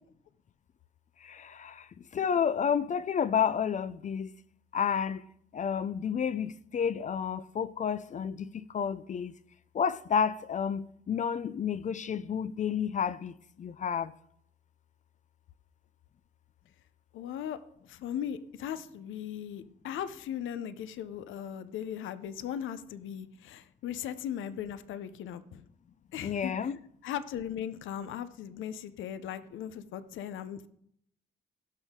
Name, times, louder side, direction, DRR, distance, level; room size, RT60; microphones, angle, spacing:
voice 1, 1.2-4.3 4.7-5.3 5.5-9.4 9.7-14.1 26.2-26.8, left 7 dB, 40° left, 0.4 m, -31 dB
voice 2, 17.1-17.6 17.9-25.6 26.1-26.5 27.0-30.7, left 9 dB, 80° left, 0.7 m, -38 dB
17.0 x 6.3 x 3.7 m
cardioid pair, 90°, 20 cm